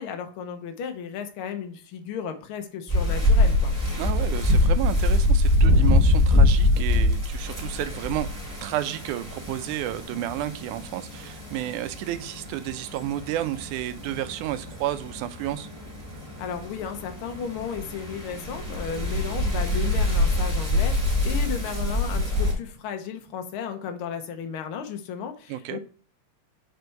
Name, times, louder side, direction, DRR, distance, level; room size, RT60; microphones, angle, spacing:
voice 1, 0.0-3.7 16.4-25.8, left 7 dB, 75° left, 1.2 m, -34 dB
sound 1, 2.9-22.5, left 1 dB, 5° right, 2.6 m, -24 dB
voice 2, 4.0-8.3 8.6-15.7 25.5-25.8, right 13 dB, 80° right, 2.0 m, -31 dB
6.7 x 4.5 x 4.5 m
omnidirectional pair, 3.6 m